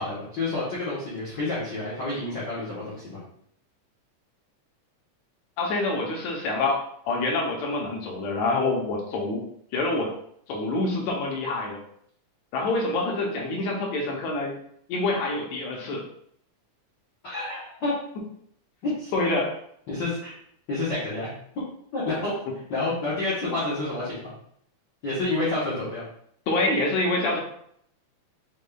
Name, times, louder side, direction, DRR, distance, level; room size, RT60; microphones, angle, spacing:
voice 1, 0.0-3.2 17.2-18.0 18.8-19.1 19.9-20.3 20.7-21.3 21.9-22.4 22.7-24.3 25.0-26.0, left 2 dB, 90° left, -8 dB, 0.9 m, -29 dB
voice 2, 5.6-9.4 9.7-10.1 10.5-11.8 12.5-14.6 14.9-16.1 19.1-19.6 26.5-27.4, left 2 dB, 70° left, 0 dB, 1.9 m, -26 dB
5.1 x 3.5 x 2.3 m, 0.68 s
omnidirectional pair, 3.6 m